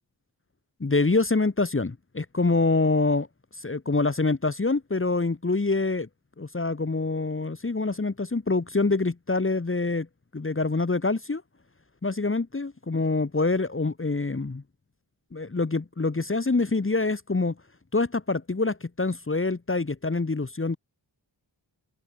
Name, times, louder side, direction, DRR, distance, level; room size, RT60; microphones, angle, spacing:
voice 1, 0.8-3.3 3.6-6.1 6.4-10.1 10.3-11.4 12.0-14.6 15.3-17.5 17.9-20.8, left 3 dB, 30° left, 1.6 m, -25 dB
open air
wide cardioid pair, 70°, 44 cm